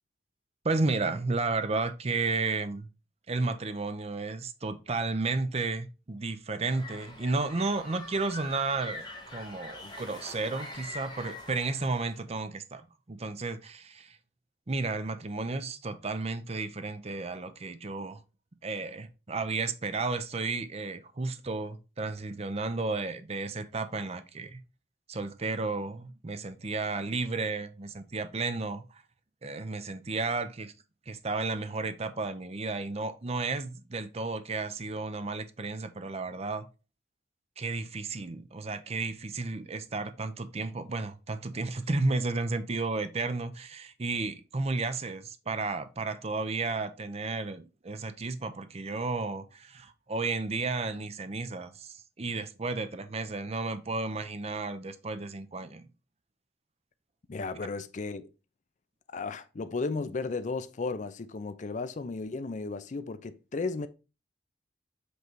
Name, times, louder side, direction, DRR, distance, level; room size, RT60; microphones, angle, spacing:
voice 1, 0.6-2.9 3.3-12.8 13.1-14.2 14.7-18.2 18.6-24.6 25.1-28.8 29.4-30.7 31.1-36.7 37.6-55.9, right 3 dB, 35° right, 0.7 m, -33 dB
sound 1, 6.7-12.2, left 2 dB, 25° left, 1.5 m, -44 dB
voice 2, 57.3-58.3 59.1-63.9, left 3 dB, 45° left, 0.5 m, -34 dB
8.0 x 3.2 x 4.6 m
head